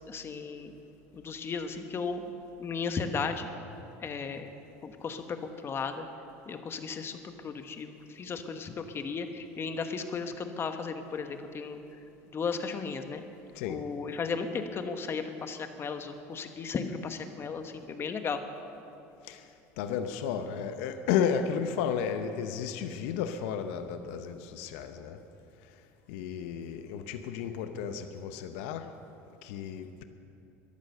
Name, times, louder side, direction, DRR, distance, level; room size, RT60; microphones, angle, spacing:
voice 1, 0.1-0.7 1.1-2.3 2.6-3.5 4.0-4.5 4.8-6.1 6.5-11.8 12.3-13.2 13.7-18.4, left 5 dB, 35° left, 8 dB, 1.2 m, -35 dB
voice 2, 19.8-25.2 26.1-28.9 29.4-30.0, left 7 dB, 80° left, 9 dB, 0.8 m, -33 dB
14.0 x 11.5 x 6.6 m, 2.8 s
supercardioid pair, 100°, 7 cm